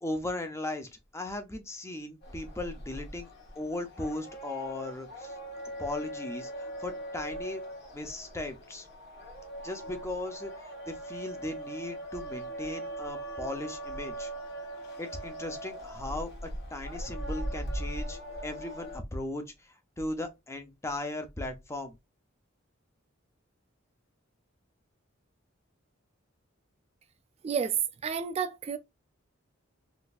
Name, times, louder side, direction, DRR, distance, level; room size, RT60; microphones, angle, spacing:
voice 1, 0.0-3.3 3.6-5.4 5.8-7.6 7.9-8.9 9.6-14.3 15.0-21.9, left 2 dB, 15° left, 0.6 m, -37 dB
sound 1, 2.2-19.0, right 1 dB, 60° left, 1.3 m, -40 dB
voice 2, 27.4-28.8, right 7 dB, 30° right, 0.3 m, -30 dB
3.9 x 2.6 x 2.4 m
head